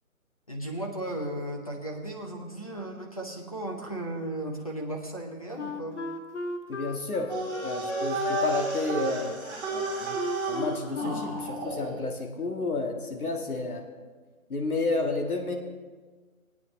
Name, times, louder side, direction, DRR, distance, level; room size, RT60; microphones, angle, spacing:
voice 1, 0.5-6.0, right 1 dB, 25° left, 1 dB, 0.7 m, -35 dB
Wind instrument woodwind instrument, 5.6-11.9, left 2 dB, 55° left, 0.9 m, -36 dB
voice 2, 6.7-7.3 7.6-10.2 10.5-13.8 14.5-15.5, left 3 dB, 85° left, 2 dB, 1.8 m, -31 dB
sound 1, 7.3-12.0, right 3 dB, 15° right, 1.8 m, -32 dB
20.5 x 9.1 x 3.2 m, 1.4 s
hypercardioid pair, 175°, 43 cm